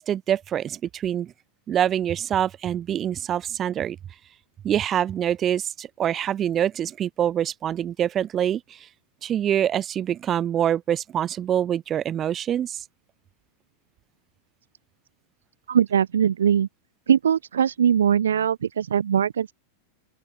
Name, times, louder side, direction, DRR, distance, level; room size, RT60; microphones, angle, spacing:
voice 1, 0.0-1.3 1.7-4.0 4.6-8.8 9.2-12.8, right 10 dB, 25° right, 0.8 m, -25 dB
voice 2, 15.7-16.7 17.1-19.5, right 8 dB, 65° right, 0.3 m, -21 dB
open air
figure-of-eight pair, 90°, 0 cm